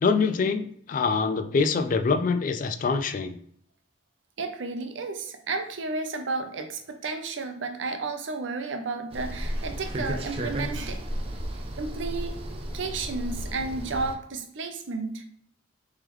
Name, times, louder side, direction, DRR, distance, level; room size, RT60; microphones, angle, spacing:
voice 1, 0.0-3.4, left 4 dB, 45° left, 8 dB, 0.3 m, -25 dB
voice 2, 4.4-11.0 11.8-12.4 12.7-15.2, right 3 dB, 80° right, 6 dB, 0.6 m, -32 dB
sound 1, 9.1-14.2, equal, 30° right, 0.5 m, -33 dB
3.6 x 3.2 x 3.1 m, 0.64 s
head